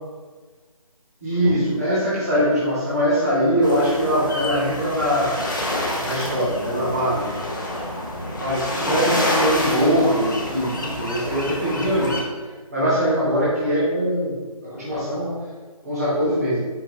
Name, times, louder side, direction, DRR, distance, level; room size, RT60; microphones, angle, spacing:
voice 1, 1.2-5.7 5.9-7.3 8.3-12.2 12.7-14.3 14.6-15.3 15.8-16.6, equal, 25° right, -9 dB, 1.1 m, -22 dB
sound 1, 3.6-12.2, left 1 dB, 30° left, 0.6 m, -28 dB
4.8 x 3.2 x 3.4 m, 1.4 s
figure-of-eight pair, 175°, 19 cm